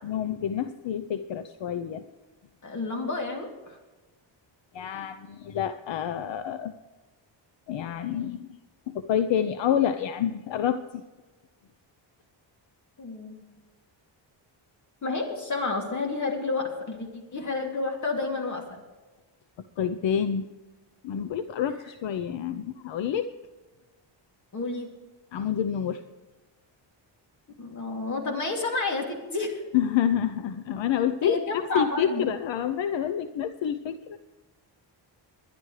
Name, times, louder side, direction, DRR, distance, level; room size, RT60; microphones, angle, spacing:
voice 1, 0.0-2.0 4.7-6.7 7.7-8.5 8.9-11.0 19.8-20.5 21.0-23.3 25.3-26.0 29.7-34.2, left 9 dB, 70° left, 11 dB, 0.8 m, -28 dB
voice 2, 2.6-3.8 13.0-13.4 15.0-18.8 24.5-24.9 27.6-29.6 31.2-32.3, left 3 dB, 40° left, 2 dB, 2.7 m, -30 dB
21.5 x 11.0 x 3.3 m, 1.2 s
wide cardioid pair, 165°, 46 cm